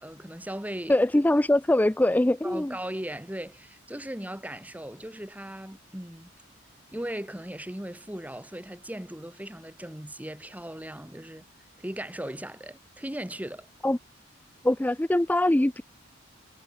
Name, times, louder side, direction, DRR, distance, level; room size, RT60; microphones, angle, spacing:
voice 1, 0.0-0.9 2.4-6.3 6.9-11.4 11.8-13.7, right 1 dB, 10° right, 1.7 m, -38 dB
voice 2, 0.9-2.8 13.8-14.0 14.6-15.8, left 1 dB, 10° left, 0.4 m, -22 dB
head